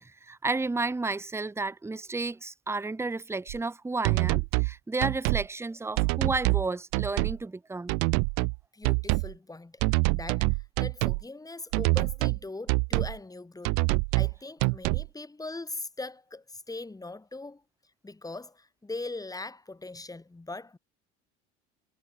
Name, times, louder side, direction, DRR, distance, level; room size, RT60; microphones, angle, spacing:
voice 1, 0.0-7.9, right 3 dB, 10° right, 0.9 m, -32 dB
sound 1, 3.5-3.6 4.0-4.7 5.0-5.4 6.0-6.7 6.9-7.4 7.9-8.6 8.8-9.3 9.8-11.2 11.7-12.4 12.7-13.2 13.6-14.3 14.6-15.1, right 40 dB or more, 60° right, 0.7 m, -25 dB
voice 2, 8.7-9.8 10.1-13.8 14.2-17.6 18.0-20.8, left 2 dB, 10° left, 1.8 m, -40 dB
hypercardioid pair, 70°, 33 cm